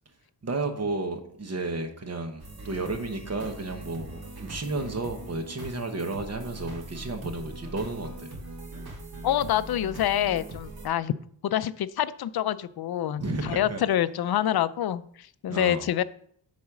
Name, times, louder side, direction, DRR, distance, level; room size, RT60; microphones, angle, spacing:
voice 1, 0.4-8.3 13.2-13.8 15.5-15.8, right 3 dB, 35° right, 6 dB, 1.1 m, -32 dB
sound 1, 2.4-10.9, right 2 dB, 60° right, 2.0 m, -41 dB
voice 2, 9.2-11.1 11.4-16.0, left 11 dB, 60° left, 14 dB, 0.5 m, -26 dB
8.5 x 4.2 x 6.1 m, 0.62 s
wide cardioid pair, 155°, 42 cm